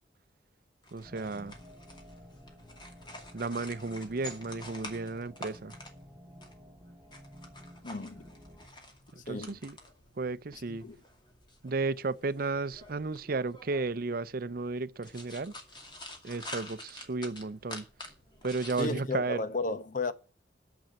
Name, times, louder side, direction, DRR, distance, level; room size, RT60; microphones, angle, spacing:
sound 1, 0.8-18.9, left 1 dB, 25° left, 2.4 m, -49 dB
voice 1, 0.9-1.6 3.3-5.8 9.3-9.8 10.2-10.9 11.6-15.5 16.2-17.9 18.4-19.4, right 3 dB, 55° right, 0.6 m, -33 dB
sound 2, 1.0-8.7, equal, 5° right, 2.0 m, -52 dB
voice 2, 7.8-8.3 9.2-9.6 10.7-11.0 18.8-20.1, left 2 dB, 45° left, 0.9 m, -34 dB
10.5 x 7.1 x 7.7 m
head